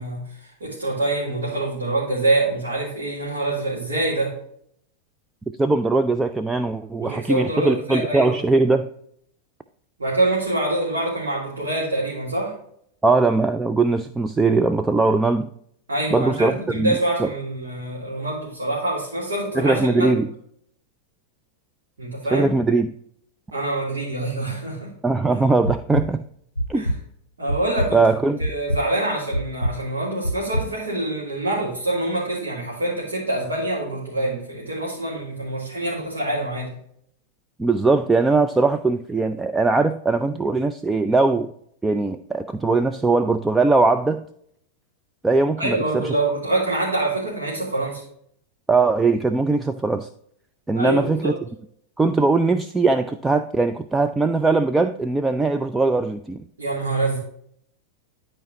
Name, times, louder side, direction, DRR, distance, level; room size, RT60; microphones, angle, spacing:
voice 1, 0.0-4.3 7.0-8.4 10.0-12.5 15.9-20.1 22.0-22.5 23.5-24.9 25.3-25.4 26.7-26.9 27.4-28.0 28.4-36.8 45.6-48.0 50.7-51.3 56.6-57.2, right 2 dB, 70° right, -7 dB, 2.8 m, -25 dB
voice 2, 5.6-8.9 13.0-15.5 16.1-17.3 19.6-20.3 22.3-22.9 25.0-26.2 26.7-26.8 27.9-28.4 37.6-41.5 41.8-44.2 45.2-46.1 48.7-50.1 50.7-51.4 52.0-56.4, right 3 dB, 10° right, 9 dB, 0.4 m, -20 dB
sound 1, 25.6-26.1 26.6-27.0 27.5-27.9 28.4-28.8 29.3-29.7 30.2-30.7, equal, 85° left, 0.4 m, -24 dB
12.5 x 4.5 x 2.8 m, 0.68 s
figure-of-eight pair, 90°, 0 cm